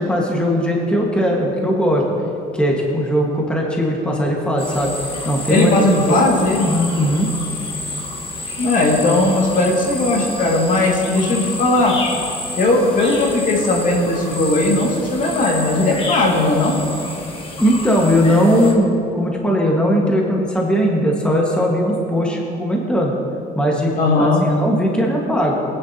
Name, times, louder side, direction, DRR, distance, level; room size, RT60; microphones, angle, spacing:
voice 1, 0.0-2.0 2.5-4.9 5.3-5.8 6.1-6.2 6.7-7.3 17.6-23.1 23.5-25.5, equal, 5° left, -2 dB, 1.6 m, -18 dB
sound 1, 4.6-18.7, left 2 dB, 30° left, 1.6 m, -29 dB
voice 2, 5.5-6.7 8.6-12.0 12.6-16.8 24.0-24.5, left 2 dB, 50° left, -1 dB, 2.1 m, -17 dB
19.5 x 10.0 x 2.9 m, 2.6 s
cardioid pair, 110°, 17 cm